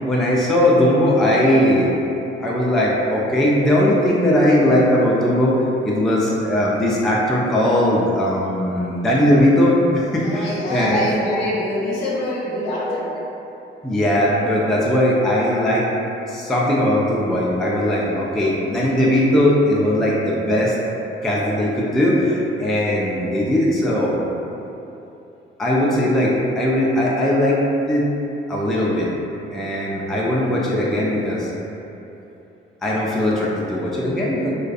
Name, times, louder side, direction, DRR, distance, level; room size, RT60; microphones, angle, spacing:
voice 1, 0.0-1.9 2.4-11.4 12.8-13.0 13.8-15.9 16.3-20.7 21.2-24.2 25.6-28.1 28.5-29.1 29.5-31.5 32.8-34.5, left 1 dB, ahead, -5 dB, 0.3 m, -19 dB
voice 2, 10.2-13.1, left 1 dB, 60° left, -6 dB, 0.7 m, -25 dB
2.3 x 2.3 x 2.4 m, 2.8 s
hypercardioid pair, 45°, 29 cm